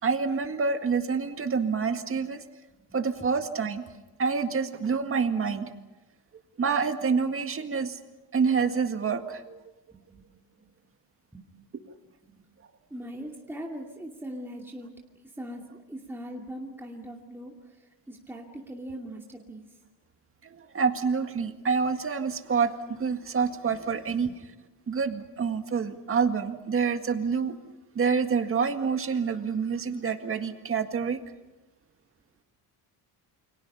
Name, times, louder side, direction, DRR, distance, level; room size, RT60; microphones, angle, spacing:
voice 1, 0.0-2.4 2.9-3.8 4.2-5.7 6.6-8.0 8.3-9.6 20.4-24.3 24.9-27.6 28.0-31.2, right 5 dB, 30° right, 7 dB, 1.9 m, -27 dB
voice 2, 2.9-3.4 9.9-10.7 11.3-11.9 12.2-12.4 12.9-14.9 15.2-19.8 24.2-24.3, right 1 dB, 5° right, -1 dB, 2.5 m, -41 dB
29.5 x 25.5 x 5.6 m, 1.1 s
cardioid pair, 135°, 41 cm